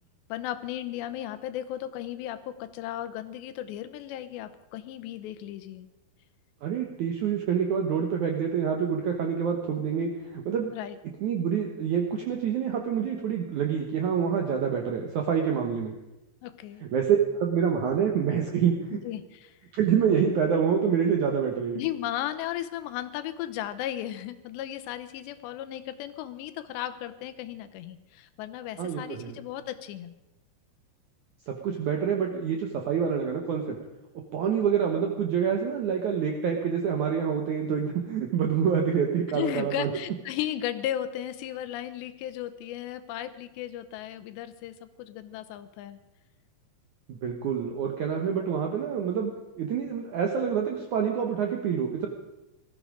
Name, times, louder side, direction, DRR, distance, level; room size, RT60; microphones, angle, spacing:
voice 1, 0.3-5.9 10.7-11.0 16.4-16.8 18.9-19.6 21.8-30.1 39.3-46.0, left 12 dB, 85° left, 11 dB, 3.0 m, -35 dB
voice 2, 6.6-10.7 11.2-15.9 16.9-19.0 19.7-21.8 28.8-29.4 31.5-33.8 34.3-39.9 47.1-49.3 49.6-52.1, right 7 dB, 75° right, 2 dB, 1.8 m, -27 dB
19.0 x 14.0 x 5.1 m, 0.97 s
omnidirectional pair, 5.1 m